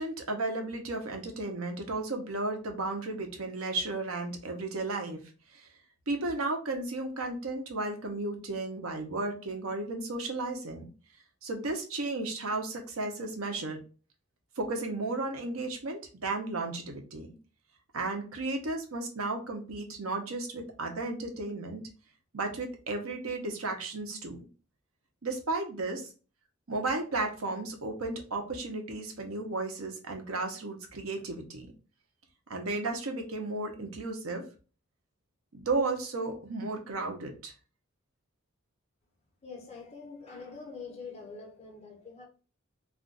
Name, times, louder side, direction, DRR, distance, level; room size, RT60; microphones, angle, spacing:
voice 1, 0.0-5.2 5.5-5.7 6.1-10.9 11.4-13.8 14.6-17.3 17.9-21.8 22.3-24.4 25.2-26.1 26.7-31.7 32.5-34.5 35.5-37.5, right 2 dB, 85° right, 0.8 m, -34 dB
voice 2, 39.4-42.3, left 4 dB, 30° left, 1.0 m, -45 dB
2.5 x 2.4 x 3.8 m
head